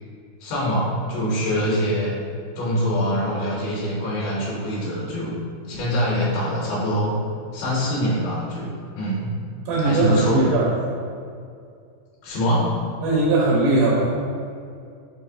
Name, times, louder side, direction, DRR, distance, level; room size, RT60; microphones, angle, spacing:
voice 1, 0.4-2.1 2.5-5.4 5.7-7.2 7.5-8.7 8.9-9.3 9.8-10.5 12.2-12.8, equal, 80° left, -7 dB, 2.4 m, -24 dB
voice 2, 9.7-10.8 13.0-14.1, right 2 dB, 80° right, -5 dB, 2.1 m, -19 dB
5.6 x 2.5 x 2.6 m, 2.3 s
omnidirectional pair, 3.7 m